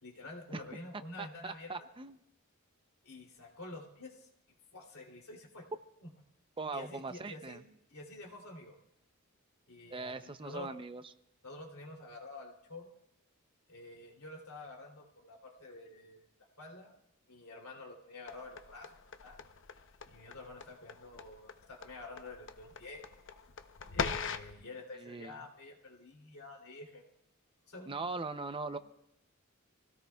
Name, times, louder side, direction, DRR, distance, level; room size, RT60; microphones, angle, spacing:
voice 1, 0.0-1.7 3.0-4.3 4.7-5.7 6.0-6.1 6.7-8.8 9.7-10.7 11.4-12.9 13.7-16.2 16.6-17.0 17.3-18.9 19.2-19.4 20.1-23.0 23.9-27.0 27.7-28.1 28.6-28.8, left 2 dB, 85° left, 0 dB, 3.0 m, -49 dB
voice 2, 1.2-2.2 6.6-7.6 9.9-11.0 25.0-25.4 27.9-28.8, right 3 dB, 25° right, 10 dB, 0.6 m, -40 dB
sound 1, 18.3-24.5, left 6 dB, 60° left, 0.8 m, -41 dB
26.0 x 17.0 x 2.3 m, 0.83 s
head